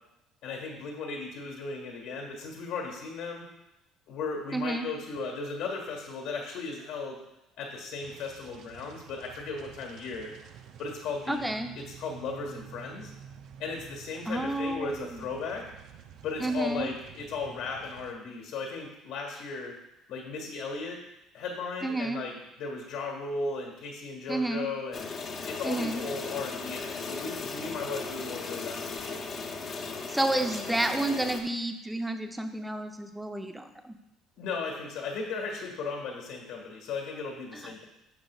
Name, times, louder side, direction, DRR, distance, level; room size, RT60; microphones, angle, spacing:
voice 1, 0.4-3.5 4.1-7.2 7.6-10.3 10.8-13.1 13.6-15.7 16.2-19.8 20.1-21.0 21.3-25.1 25.5-29.2 34.4-37.8, left 4 dB, 80° left, 0 dB, 1.7 m, -36 dB
voice 2, 4.5-4.9 11.3-11.7 14.3-15.2 16.4-16.9 21.8-22.2 24.3-24.7 25.6-26.0 30.1-33.9 37.5-37.6, right 1 dB, 5° right, 6 dB, 0.7 m, -30 dB
sound 1, 8.0-18.1, right 9 dB, 65° right, 0.5 m, -50 dB
sound 2, 24.9-31.4, left 4 dB, 45° left, 1.0 m, -37 dB
10.5 x 6.1 x 2.4 m, 0.90 s
supercardioid pair, 90°, 0 cm